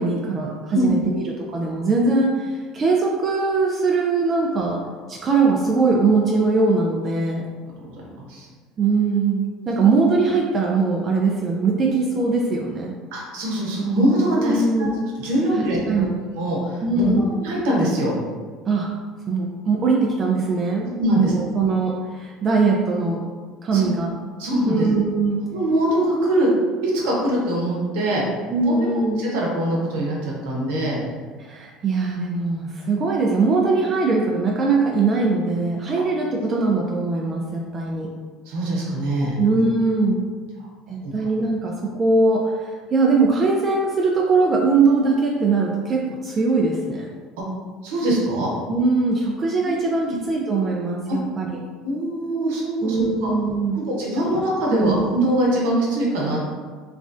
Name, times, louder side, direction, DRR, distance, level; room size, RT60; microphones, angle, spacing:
voice 1, 0.0-4.8 5.1-7.5 8.8-12.9 14.4-14.9 15.5-16.1 16.8-17.2 18.7-18.9 19.3-23.2 23.6-24.1 24.7-25.5 28.5-29.3 31.4-38.1 39.2-40.2 40.9-47.1 48.7-51.6 52.8-53.9 54.3-54.4 54.7-55.0, right 3 dB, 35° right, -1 dB, 0.3 m, -21 dB
voice 2, 13.1-14.9 15.2-16.0 16.4-17.1 17.4-18.1 21.0-21.3 23.7-23.8 24.4-24.9 25.5-26.5 26.8-28.2 28.6-28.9 29.2-31.0 38.5-39.4 41.0-41.1 47.4-47.5 47.8-48.5 49.6-49.8 50.1-50.2 51.1-51.2 51.8-53.3 53.7-56.4, right 1 dB, 80° right, -3 dB, 0.9 m, -23 dB
3.1 x 2.3 x 2.5 m, 1.5 s
supercardioid pair, 105°, 0 cm